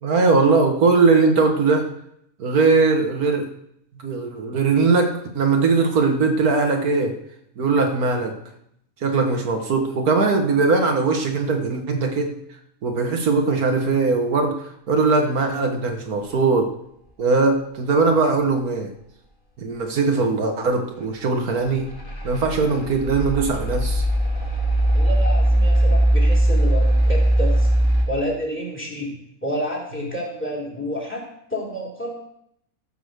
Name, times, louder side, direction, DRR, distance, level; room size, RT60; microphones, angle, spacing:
voice 1, 0.0-1.9 2.4-3.5 4.0-7.1 7.6-8.3 9.0-12.4 12.8-14.6 14.9-16.7 17.2-18.9 19.6-21.9 22.2-24.0, right 4 dB, 80° right, 3 dB, 1.9 m, -20 dB
sound 1, 21.7-28.0, right 1 dB, 40° left, 3.7 m, -19 dB
voice 2, 24.9-27.7 28.1-32.1, equal, 10° left, -1 dB, 3.2 m, -29 dB
14.0 x 5.6 x 6.7 m, 0.74 s
omnidirectional pair, 1.5 m